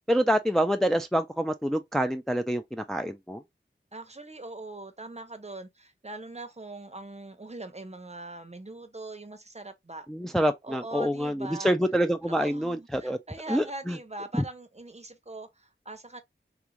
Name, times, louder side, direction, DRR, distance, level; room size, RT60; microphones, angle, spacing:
voice 1, 0.1-3.4 10.1-13.2 13.5-14.0 14.3-14.4, equal, ahead, 0.4 m, -26 dB
voice 2, 3.9-10.1 10.6-11.7 12.3-16.2, right 2 dB, 35° right, 0.7 m, -41 dB
3.5 x 2.4 x 2.8 m
wide cardioid pair, 45°, 20 cm